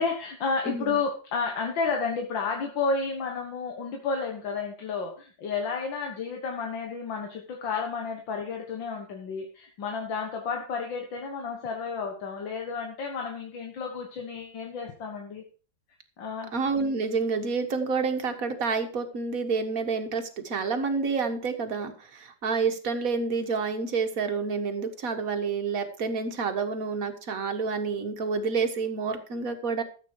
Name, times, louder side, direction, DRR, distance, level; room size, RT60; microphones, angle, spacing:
voice 1, 0.0-15.4 16.2-16.5, left 4 dB, 90° left, 2 dB, 2.2 m, -31 dB
voice 2, 0.7-1.0 16.5-29.8, right 4 dB, 50° right, 6 dB, 1.9 m, -29 dB
13.5 x 8.3 x 4.8 m, 0.39 s
omnidirectional pair, 2.0 m